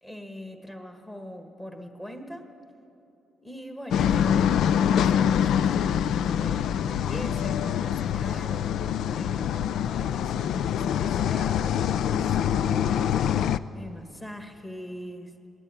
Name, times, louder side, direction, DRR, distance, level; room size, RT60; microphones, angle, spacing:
voice 1, 0.0-2.5 3.4-8.7 9.1-13.2 13.7-15.3, equal, 10° left, 5 dB, 1.5 m, -42 dB
sound 1, 3.9-13.6, left 9 dB, 65° left, 0.4 m, -25 dB
21.0 x 17.5 x 9.1 m, 2.8 s
cardioid pair, 160°, 0 cm